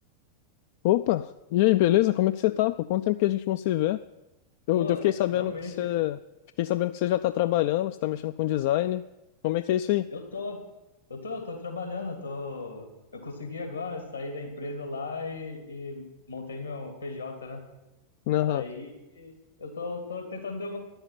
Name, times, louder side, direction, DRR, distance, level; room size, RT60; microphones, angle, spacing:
voice 1, 0.8-4.0 4.7-6.2 6.6-9.0 9.4-10.1 18.3-18.6, left 14 dB, 50° left, 12 dB, 0.3 m, -25 dB
voice 2, 5.3-5.9 10.1-10.6 11.1-17.6 18.5-20.8, left 3 dB, 80° left, 4 dB, 2.8 m, -36 dB
10.5 x 8.0 x 9.9 m, 0.98 s
figure-of-eight pair, 90°, 0 cm